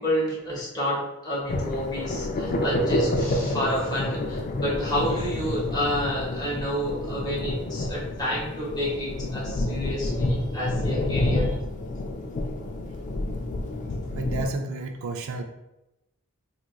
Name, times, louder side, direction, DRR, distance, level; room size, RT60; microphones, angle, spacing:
voice 1, 0.0-11.5, equal, 20° left, -6 dB, 1.2 m, -29 dB
sound 1, 1.5-14.5, left 1 dB, 35° left, 0.3 m, -28 dB
voice 2, 14.1-15.4, right 3 dB, 65° right, 5 dB, 0.3 m, -31 dB
3.5 x 2.9 x 2.3 m, 0.94 s
head